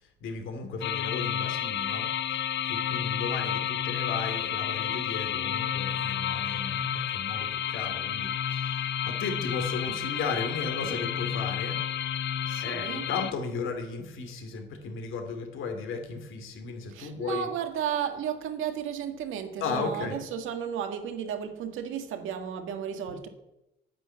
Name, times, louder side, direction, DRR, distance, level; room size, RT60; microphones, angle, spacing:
voice 1, 0.0-11.8 12.6-17.5 19.6-20.2 23.1-23.2, left 4 dB, 80° left, 2.7 m, -35 dB
sound 1, 0.8-13.3, left 9 dB, 65° left, 0.8 m, -31 dB
voice 2, 9.2-9.5 12.5-13.1 16.9-23.3, right 8 dB, 85° right, 1.7 m, -34 dB
9.7 x 9.4 x 7.8 m
cardioid pair, 90°, 20 cm